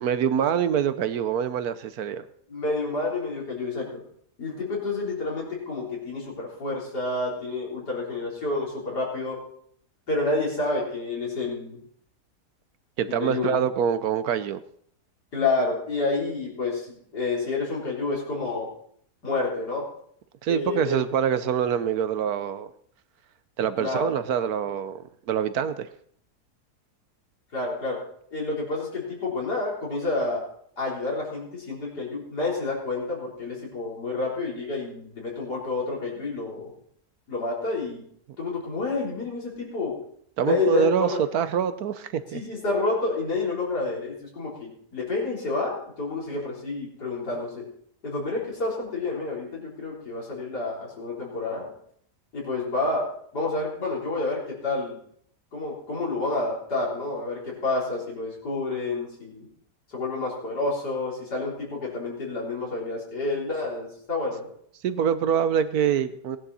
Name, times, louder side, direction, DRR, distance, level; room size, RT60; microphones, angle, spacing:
voice 1, 0.0-2.2 13.0-14.6 20.4-22.7 23.6-25.9 40.4-41.1 41.3-42.4 64.8-66.4, right 8 dB, 70° right, 12 dB, 1.2 m, -25 dB
voice 2, 2.5-4.0 4.4-9.4 10.1-11.8 13.1-13.6 15.3-18.7 19.2-19.8 20.5-21.0 23.8-24.1 27.5-28.0 28.3-30.4 30.8-36.7 37.3-38.0 38.4-39.9 40.4-41.2 42.3-47.6 48.0-51.7 52.3-53.1 53.3-55.0 55.5-59.5 59.9-64.5, left 3 dB, 80° left, -4 dB, 4.4 m, -29 dB
18.0 x 10.5 x 4.2 m, 0.64 s
omnidirectional pair, 1.7 m